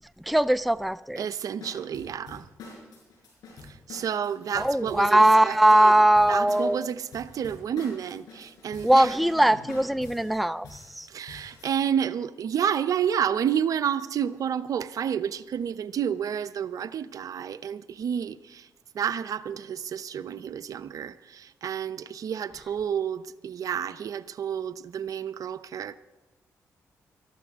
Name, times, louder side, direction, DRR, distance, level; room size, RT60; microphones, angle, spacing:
voice 1, 0.2-1.3 4.6-6.9 8.8-11.1, right 1 dB, ahead, 0.4 m, -20 dB
voice 2, 1.2-2.5 3.6-5.9 6.3-9.1 11.1-18.7 18.9-26.0, right 8 dB, 70° right, 0.6 m, -30 dB
sound 1, 1.6-11.7, left 3 dB, 85° left, 5.2 m, -45 dB
19.5 x 14.0 x 3.6 m
supercardioid pair, 60°, 6 cm